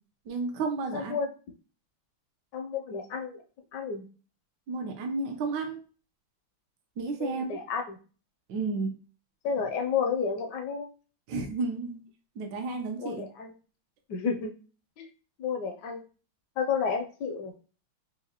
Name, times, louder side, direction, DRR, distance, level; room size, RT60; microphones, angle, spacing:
voice 1, 0.3-1.2 4.7-5.8 7.0-7.4 8.5-8.9 11.3-12.0 12.4-13.3, right 3 dB, 65° right, 4 dB, 1.2 m, -32 dB
voice 2, 0.9-1.3 2.5-3.4 3.7-4.0 7.2-8.0 9.4-10.9 13.0-13.5 14.1-14.5 15.0-15.1 15.4-16.0 16.6-17.5, left 6 dB, 70° left, 4 dB, 1.0 m, -31 dB
4.7 x 2.2 x 2.8 m, 0.37 s
omnidirectional pair, 2.2 m